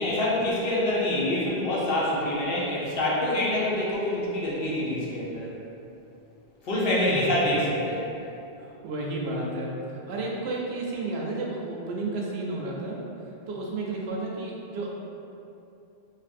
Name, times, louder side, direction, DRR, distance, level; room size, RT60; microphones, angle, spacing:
voice 1, 0.0-5.5 6.6-8.0, left 1 dB, 65° left, -6 dB, 0.9 m, -26 dB
voice 2, 7.0-7.3 8.6-13.0 13.5-14.9, right 2 dB, 85° right, -3 dB, 0.9 m, -32 dB
3.4 x 2.5 x 2.5 m, 2.7 s
omnidirectional pair, 1.1 m